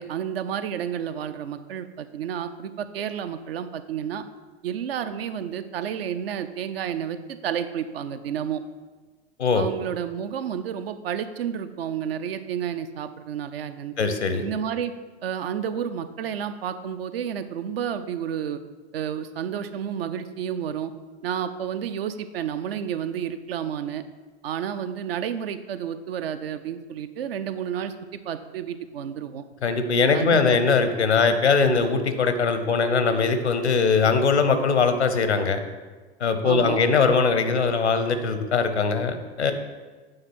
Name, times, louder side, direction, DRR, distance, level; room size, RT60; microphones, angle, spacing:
voice 1, 0.0-4.2 4.6-8.6 9.5-13.9 14.4-14.9 15.2-18.6 18.9-20.9 21.2-24.0 24.4-29.4 30.1-30.6 36.4-36.8, right 8 dB, 60° right, 11 dB, 0.6 m, -31 dB
voice 2, 14.0-14.4 29.6-35.6 36.2-39.5, left 5 dB, 80° left, 9 dB, 0.8 m, -21 dB
8.8 x 3.7 x 6.1 m, 1.4 s
figure-of-eight pair, 85°, 33 cm